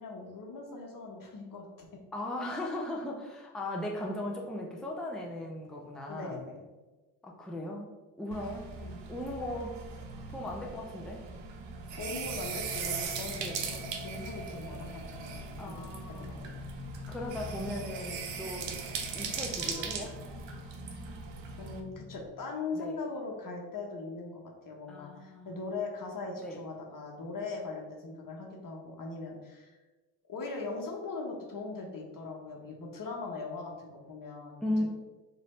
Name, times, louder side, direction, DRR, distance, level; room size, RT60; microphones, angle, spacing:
voice 1, 0.0-1.9 6.1-6.7 8.7-9.0 11.9-15.7 16.0-16.5 21.6-29.8 30.3-34.6, left 3 dB, 45° left, 0 dB, 1.1 m, -40 dB
voice 2, 2.1-6.4 7.2-7.9 8.2-8.6 9.1-9.7 10.3-11.2 13.3-13.6 15.6-16.5 17.1-18.7 19.1-20.1 22.7-23.0 24.9-25.5 26.4-26.6 34.6-34.8, left 1 dB, ahead, -1 dB, 0.6 m, -37 dB
sound 1, 8.3-21.8, right 5 dB, 80° right, 0.7 m, -39 dB
sound 2, 12.1-22.3, left 6 dB, 65° left, 0.6 m, -48 dB
3.1 x 2.7 x 4.2 m, 1.2 s
supercardioid pair, 55°, 44 cm